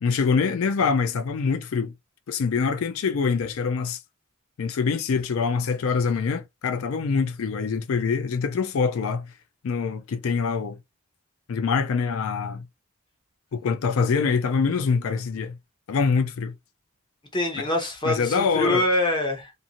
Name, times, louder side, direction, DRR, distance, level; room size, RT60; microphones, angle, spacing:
voice 1, 0.0-1.9 2.3-4.0 4.6-9.3 9.6-10.8 11.5-12.6 13.5-15.6 15.9-16.5 17.5-17.7 18.0-18.9, left 5 dB, 70° left, 0.4 m, -24 dB
voice 2, 17.3-19.5, left 1 dB, 20° left, 0.6 m, -24 dB
2.6 x 2.5 x 2.7 m
head